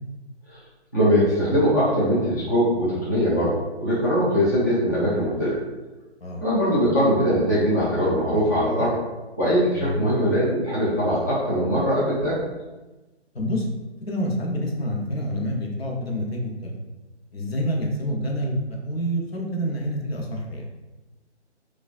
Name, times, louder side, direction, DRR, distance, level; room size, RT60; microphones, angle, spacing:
voice 1, 0.9-5.6 6.4-9.0 9.4-12.4, equal, 15° left, -10 dB, 0.5 m, -21 dB
voice 2, 13.3-13.7 14.0-16.7 17.3-20.7, equal, 60° left, -1 dB, 0.9 m, -27 dB
4.7 x 2.3 x 2.5 m, 1.1 s
figure-of-eight pair, 155°, 34 cm